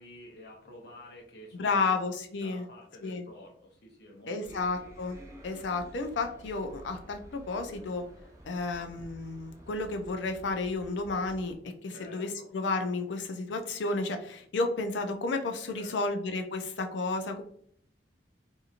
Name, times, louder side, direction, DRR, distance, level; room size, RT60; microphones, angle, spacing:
voice 1, 0.0-2.0 2.4-4.8 7.7-7.8 11.9-12.5 15.7-16.0, left 1 dB, 65° left, 0 dB, 0.8 m, -50 dB
voice 2, 1.5-2.7 3.0-3.2 4.3-5.2 5.4-8.0 8.5-17.4, left 3 dB, 85° left, 5 dB, 0.5 m, -32 dB
sound 1, 4.4-11.6, right 1 dB, 15° right, 0.4 m, -50 dB
2.8 x 2.6 x 2.4 m, 0.65 s
head